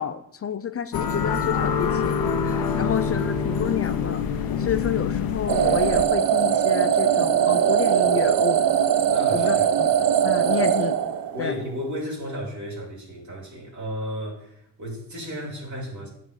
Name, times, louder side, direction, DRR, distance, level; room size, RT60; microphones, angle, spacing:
voice 1, 0.0-4.2 4.6-8.6 9.3-9.9 10.2-11.0 11.4-11.5, left 8 dB, 40° left, 0.4 m, -30 dB
sound 1, 0.9-6.1, left 6 dB, 80° left, 0.7 m, -25 dB
sound 2, 5.5-11.6, right 9 dB, 75° right, 0.6 m, -21 dB
voice 2, 9.1-9.7 11.3-16.1, equal, 55° right, 2.4 m, -34 dB
8.6 x 3.8 x 4.9 m
cardioid pair, 85°, 35 cm